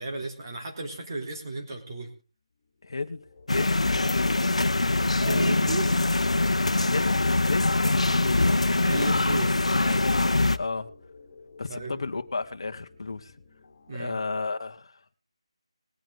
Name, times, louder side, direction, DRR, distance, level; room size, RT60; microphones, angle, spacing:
voice 1, 0.0-2.1 5.1-6.1 8.9-10.0 11.7-12.0 13.9-14.2, right 2 dB, 35° right, 1 dB, 3.4 m, -34 dB
sound 1, 2.6-14.2, left 4 dB, 35° left, 3.2 m, -52 dB
voice 2, 2.8-3.8 4.1-4.4 6.8-8.7 10.5-10.9 11.6-13.3 13.9-15.2, left 3 dB, 50° left, 8 dB, 1.2 m, -33 dB
sound 2, 3.5-10.6, left 2 dB, 90° left, 0.9 m, -23 dB
20.0 x 9.0 x 3.8 m, 0.33 s
figure-of-eight pair, 170°, 3 cm